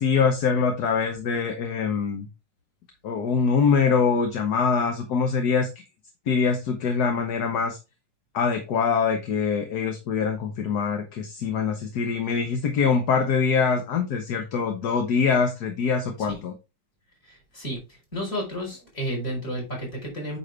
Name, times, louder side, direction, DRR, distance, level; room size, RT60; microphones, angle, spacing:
voice 1, 0.0-2.3 3.0-5.8 6.3-7.8 8.3-16.5, left 5 dB, 55° left, 5 dB, 1.4 m, -24 dB
voice 2, 17.2-20.4, equal, 30° left, -1 dB, 4.4 m, -32 dB
8.9 x 5.2 x 3.2 m, 0.27 s
omnidirectional pair, 2.2 m